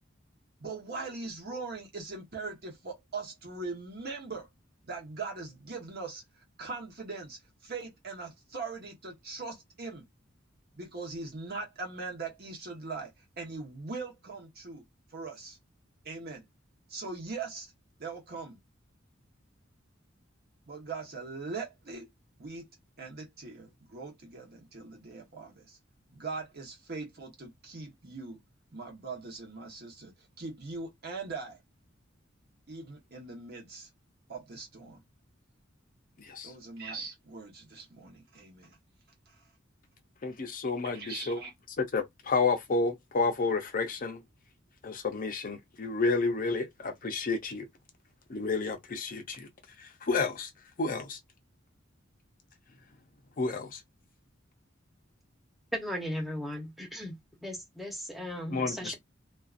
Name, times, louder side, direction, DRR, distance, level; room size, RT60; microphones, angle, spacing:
voice 1, 0.6-4.5 4.8-6.2 6.6-10.0 10.7-13.1 13.4-14.8 15.1-15.6 16.0-16.4 16.9-17.7 18.0-18.6 20.7-22.1 22.4-22.7 23.0-25.8 26.1-28.4 28.7-31.6 32.7-33.9 34.3-35.0 36.4-38.8 40.8-41.5, right 4 dB, 55° right, 1.0 m, -41 dB
voice 2, 40.2-41.4 41.8-44.2 44.8-47.7 48.3-49.5 49.8-50.5 50.8-51.2 53.4-53.8 58.5-58.9, left 4 dB, 45° left, 0.6 m, -30 dB
voice 3, 55.7-58.9, equal, ahead, 0.8 m, -37 dB
2.5 x 2.3 x 2.4 m
head